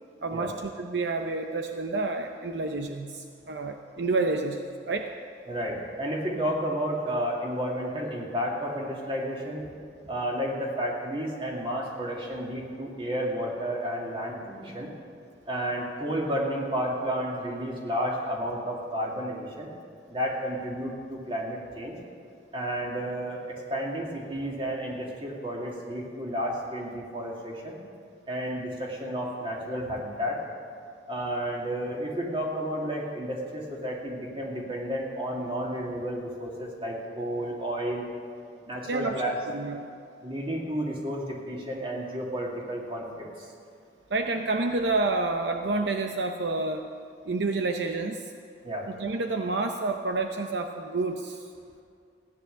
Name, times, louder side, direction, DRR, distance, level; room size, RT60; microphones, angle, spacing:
voice 1, 0.2-5.1 38.9-39.2 39.5-39.8 44.1-46.9 47.3-48.3 48.9-51.5, right 3 dB, 70° right, 5 dB, 0.7 m, -29 dB
voice 2, 5.5-9.7 10.0-14.9 15.5-19.7 20.1-22.0 22.5-27.8 28.3-30.4 31.1-38.1 38.6-39.4 40.2-43.5 48.6-48.9, equal, 30° right, -2 dB, 2.6 m, -31 dB
16.0 x 10.5 x 6.7 m, 2.3 s
head